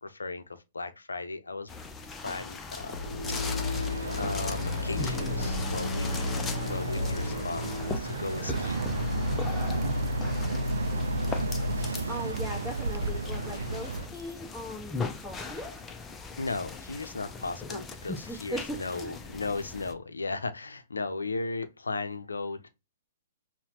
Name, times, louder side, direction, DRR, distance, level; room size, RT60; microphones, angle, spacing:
voice 1, 0.0-0.4 0.7-1.7 2.1-3.0 3.3-3.9 4.2-6.4 6.7-7.7 7.9-8.8 16.4-22.7, left 3 dB, 80° left, 0.6 m, -36 dB
sound 1, 1.7-19.9, left 4 dB, 15° left, 0.5 m, -39 dB
sound 2, 2.8-8.0, left 3 dB, 50° left, 0.8 m, -33 dB
Boat Water vehicle, 3.3-14.1, right 1 dB, 75° right, 0.4 m, -32 dB
voice 2, 12.1-15.7 17.7-17.8 18.2-19.2, equal, 10° right, 1.2 m, -39 dB
5.5 x 2.2 x 2.8 m
figure-of-eight pair, 120°, 0 cm